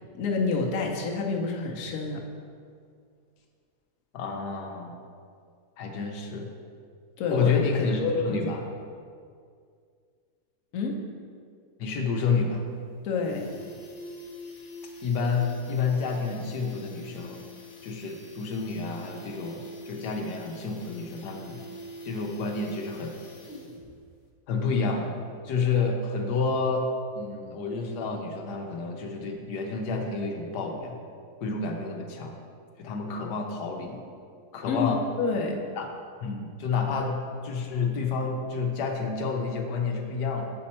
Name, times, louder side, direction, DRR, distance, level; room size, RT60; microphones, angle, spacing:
voice 1, 0.1-2.2 7.2-7.5 8.0-8.4 10.7-11.0 13.0-13.5 34.7-35.6, left 4 dB, 65° left, 0 dB, 1.2 m, -28 dB
voice 2, 4.1-5.0 5.8-6.5 7.3-8.6 11.8-12.6 15.0-17.4 17.8-21.6 22.0-23.2 24.5-25.2 25.4-26.9 27.1-31.0 31.4-32.4 32.8-34.0 34.5-35.0 35.8-35.9 36.2-40.5, left 4 dB, 85° left, 2 dB, 1.4 m, -29 dB
sound 1, 12.3-12.4 12.7-12.8 13.1-23.9 24.2-24.3, equal, 40° left, 0.8 m, -45 dB
7.6 x 5.6 x 4.2 m, 2.2 s
omnidirectional pair, 1.7 m